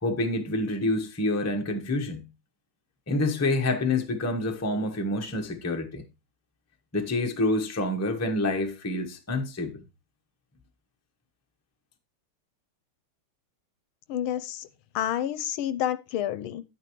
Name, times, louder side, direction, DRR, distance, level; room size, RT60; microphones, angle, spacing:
voice 1, 0.0-2.2 3.1-6.0 6.9-9.8, left 2 dB, 15° left, 0.6 m, -27 dB
voice 2, 14.1-14.7 14.9-16.6, left 11 dB, 80° left, 1.4 m, -29 dB
9.4 x 9.1 x 3.0 m
omnidirectional pair, 2.4 m